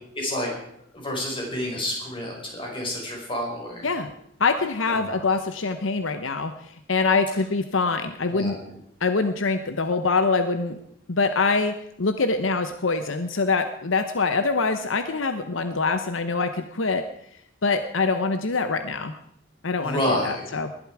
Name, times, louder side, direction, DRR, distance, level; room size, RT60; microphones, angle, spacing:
voice 1, 0.1-0.5 0.9-3.9 4.9-5.3 8.3-8.6 19.8-20.4, left 1 dB, 25° left, -1 dB, 5.4 m, -29 dB
voice 2, 4.4-6.5 6.9-8.6 9.0-10.8 11.1-17.0 17.6-19.1 19.6-20.7, left 4 dB, 75° left, 9 dB, 0.9 m, -24 dB
20.0 x 12.0 x 4.8 m, 0.74 s
head